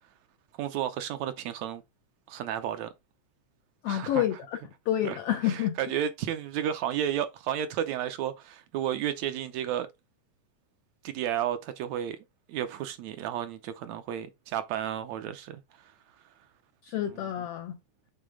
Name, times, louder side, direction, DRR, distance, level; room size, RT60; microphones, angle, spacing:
voice 1, 0.6-1.8 2.3-2.9 3.9-4.2 5.1-5.2 5.4-9.9 11.0-12.2 12.5-15.6, right 10 dB, 75° right, 1.8 m, -32 dB
voice 2, 3.8-4.6 4.9-5.8 16.8-17.8, left 12 dB, 80° left, 1.3 m, -28 dB
6.9 x 4.0 x 3.6 m
omnidirectional pair, 3.5 m